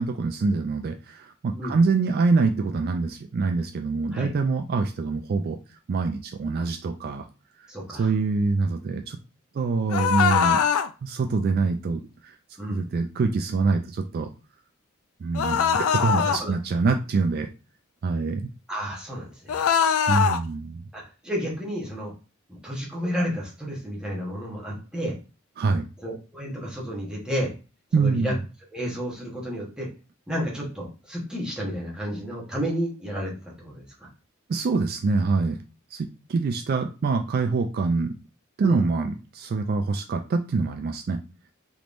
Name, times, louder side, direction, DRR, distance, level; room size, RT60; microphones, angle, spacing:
voice 1, 0.0-5.6 5.9-7.3 8.0-9.2 9.5-10.6 11.0-12.3 12.7-14.3 15.2-17.5 18.0-18.5 20.1-20.8 25.6-25.9 27.9-28.3 34.5-35.6 35.9-38.1 38.6-41.2, right 4 dB, 50° right, 5 dB, 0.3 m, -25 dB
voice 2, 7.7-8.1 12.6-12.9 15.5-16.5 18.7-19.6 20.9-22.1 22.5-25.2 26.0-27.5 28.0-28.3 28.7-29.9 30.3-34.1 38.6-38.9, equal, 5° right, -4 dB, 1.0 m, -31 dB
sound 1, 9.9-10.9 15.3-16.4 19.5-20.4, left 7 dB, 85° left, 0.3 m, -22 dB
3.5 x 3.0 x 2.5 m, 0.33 s
head